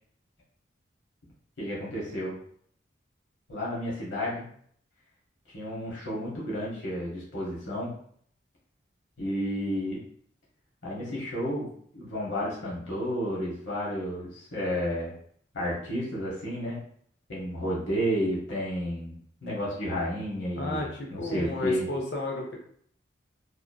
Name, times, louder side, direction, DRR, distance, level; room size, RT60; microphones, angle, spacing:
voice 1, 1.6-2.4 3.5-4.5 5.5-7.9 9.2-10.0 10.8-11.7 11.9-15.1 15.5-16.8 17.3-19.2 19.4-21.9, equal, 80° left, -5 dB, 1.0 m, -31 dB
voice 2, 20.6-22.6, left 2 dB, 60° left, -1 dB, 0.6 m, -33 dB
2.9 x 2.5 x 2.3 m, 0.62 s
head